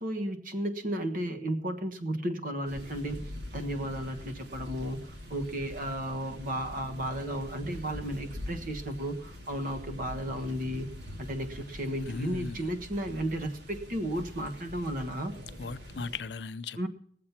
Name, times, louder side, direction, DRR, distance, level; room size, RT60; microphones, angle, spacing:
voice 1, 0.0-3.3 3.5-5.0 5.3-10.9 11.2-15.4 16.8-16.9, right 1 dB, 50° right, 1.4 m, -33 dB
sound 1, 2.6-16.2, left 1 dB, 80° right, 2.4 m, -44 dB
voice 2, 12.1-12.7 15.6-16.9, left 4 dB, 75° left, 0.6 m, -37 dB
19.0 x 7.5 x 5.8 m
head